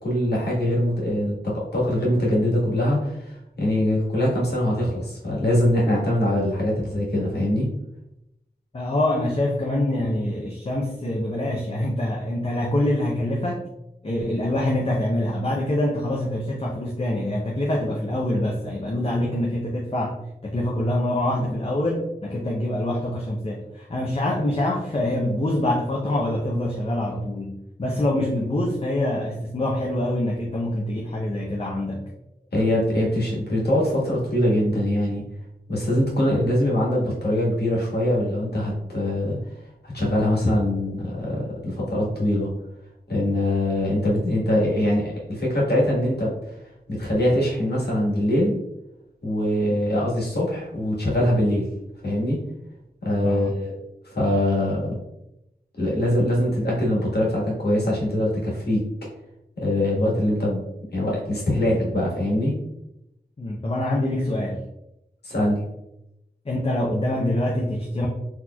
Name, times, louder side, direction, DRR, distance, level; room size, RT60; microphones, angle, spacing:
voice 1, 0.0-7.7 21.4-21.5 32.5-35.2 35.7-39.4 39.8-42.5 43.1-46.6 46.9-48.6 49.2-51.7 52.0-52.4 53.0-53.7 54.1-55.0 55.8-58.8 59.6-60.6 60.9-62.5 65.2-65.6, left 1 dB, 75° left, -4 dB, 1.3 m, -23 dB
voice 2, 8.7-13.7 14.0-20.2 20.4-32.1 49.7-49.8 53.2-53.5 63.4-64.6 66.5-68.1, left 1 dB, 35° left, -2 dB, 0.5 m, -25 dB
4.2 x 3.0 x 2.2 m, 0.86 s
wide cardioid pair, 65°, 17 cm